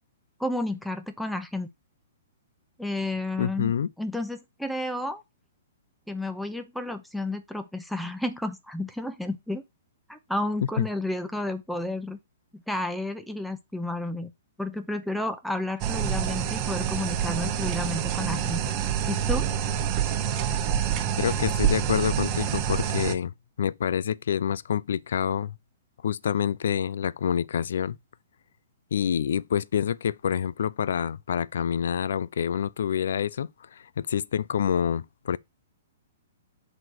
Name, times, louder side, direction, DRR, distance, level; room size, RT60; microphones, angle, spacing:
voice 1, 0.4-1.7 2.8-3.7 4.0-5.2 6.1-9.6 10.1-12.2 12.5-14.3 14.6-18.6 19.1-19.5, left 1 dB, ahead, 0.7 m, -31 dB
voice 2, 3.4-3.9 10.8-10.9 21.2-23.3 23.6-25.5 26.0-28.0 28.9-35.4, left 8 dB, 75° left, 0.4 m, -27 dB
sound 1, 15.8-23.2, right 9 dB, 35° right, 1.2 m, -27 dB
7.5 x 4.1 x 4.7 m
hypercardioid pair, 140°, 0 cm